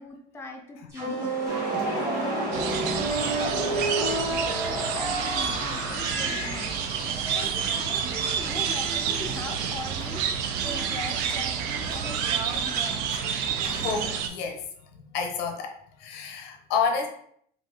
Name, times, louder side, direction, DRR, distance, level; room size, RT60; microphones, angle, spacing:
voice 1, 0.0-6.7 7.0-13.0 13.5-13.9, left 2 dB, 15° left, 2 dB, 0.4 m, -41 dB
sound 1, 0.9-7.6, right 2 dB, 20° right, 0.8 m, -30 dB
sound 2, 1.5-14.2, right 2 dB, 60° right, 0.9 m, -38 dB
sound 3, 2.5-14.3, right 7 dB, 85° right, 0.4 m, -29 dB
voice 2, 13.8-17.1, left 5 dB, 80° left, 4 dB, 0.7 m, -30 dB
2.6 x 2.4 x 3.6 m, 0.66 s
cardioid pair, 175°, 17 cm